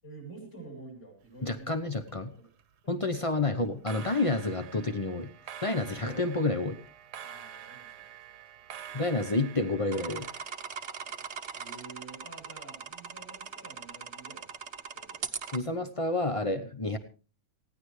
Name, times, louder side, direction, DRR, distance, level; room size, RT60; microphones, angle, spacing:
voice 1, 0.0-1.9 2.3-2.5 2.8-3.3 5.9-6.3 7.2-8.1 11.5-14.5 14.9-15.3, right 3 dB, 35° left, 1 dB, 7.5 m, -49 dB
sound 1, 1.2-2.1 2.4-2.8 3.7-10.5, right 9 dB, 60° right, 1.4 m, -47 dB
voice 2, 1.4-2.3 2.9-5.3 5.6-6.8 8.9-10.3 15.5-17.0, left 2 dB, 55° left, 9 dB, 0.3 m, -29 dB
sound 2, 9.9-15.6, right 6 dB, 45° right, 1.0 m, -40 dB
19.5 x 16.5 x 3.2 m, 0.36 s
omnidirectional pair, 2.2 m